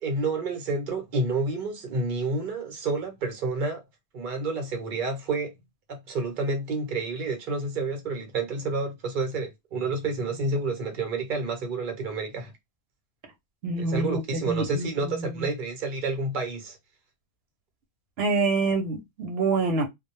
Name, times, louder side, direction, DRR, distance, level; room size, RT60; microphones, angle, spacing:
voice 1, 0.0-3.8 4.1-5.5 5.9-12.5 13.8-16.8, right 3 dB, 55° right, 0.9 m, -29 dB
voice 2, 13.6-15.3 18.2-19.9, right 3 dB, 85° right, 0.8 m, -26 dB
2.2 x 2.0 x 2.8 m
omnidirectional pair, 1.0 m